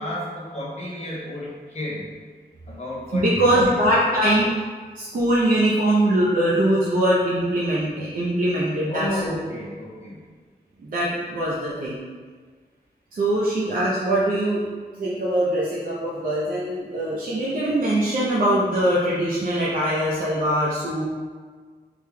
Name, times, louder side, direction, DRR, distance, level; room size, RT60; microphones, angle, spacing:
voice 1, 0.0-2.1 2.7-4.2 8.9-10.2 11.1-11.2, left 1 dB, 40° left, -5 dB, 0.9 m, -32 dB
voice 2, 3.1-4.5 5.0-9.2 10.8-12.0 13.1-14.6 15.0-21.0, right 1 dB, 55° right, -6 dB, 0.5 m, -22 dB
3.4 x 2.2 x 3.5 m, 1.5 s
wide cardioid pair, 140°, 17 cm